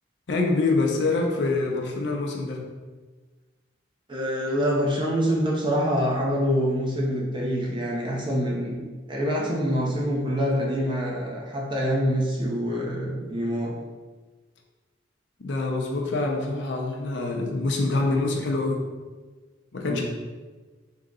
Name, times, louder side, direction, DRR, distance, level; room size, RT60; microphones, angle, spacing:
voice 1, 0.3-2.6 15.4-18.9 19.7-20.0, left 3 dB, 65° left, 1 dB, 0.6 m, -25 dB
voice 2, 4.1-13.7 19.9-20.0, equal, 25° right, -3 dB, 0.6 m, -25 dB
3.7 x 2.8 x 3.7 m, 1.3 s
head